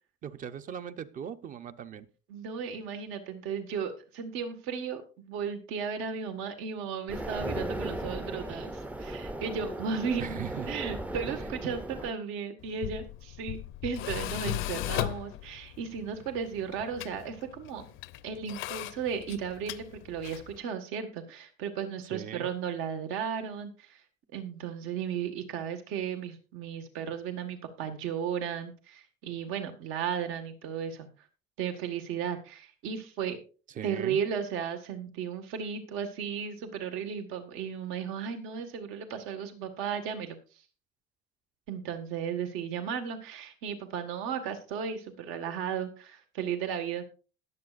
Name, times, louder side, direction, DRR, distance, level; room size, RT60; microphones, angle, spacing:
voice 1, 0.2-2.1 10.2-10.7 11.3-11.4 22.1-22.5 33.7-34.2, right 8 dB, 40° right, 12 dB, 0.8 m, -39 dB
voice 2, 2.3-10.4 10.7-17.9 18.2-24.0 24.3-31.1 31.6-33.4 33.8-40.4 41.7-47.0, right 7 dB, 75° right, 7 dB, 1.8 m, -35 dB
sound 1, 7.1-12.1, right 1 dB, 5° right, 0.5 m, -36 dB
Tools, 12.6-20.6, left 16 dB, 70° left, 0.6 m, -38 dB
20.5 x 7.8 x 2.5 m, 0.35 s
cardioid pair, 150°, 21 cm